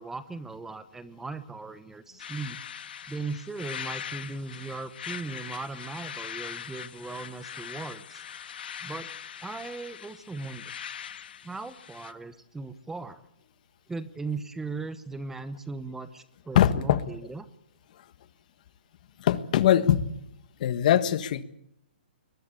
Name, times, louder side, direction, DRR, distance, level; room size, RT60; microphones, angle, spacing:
voice 1, 0.0-2.6 3.1-8.2 8.8-9.1 9.4-10.7 11.4-13.2 13.9-17.5, right 3 dB, 5° right, 13 dB, 1.0 m, -38 dB
sound 1, 2.2-12.1, left 8 dB, 65° left, 1.5 m, -41 dB
voice 2, 16.5-17.0 19.2-20.1 20.6-21.4, left 10 dB, 45° left, 13 dB, 1.5 m, -22 dB
22.0 x 21.5 x 8.4 m, 0.74 s
hypercardioid pair, 155°, 6 cm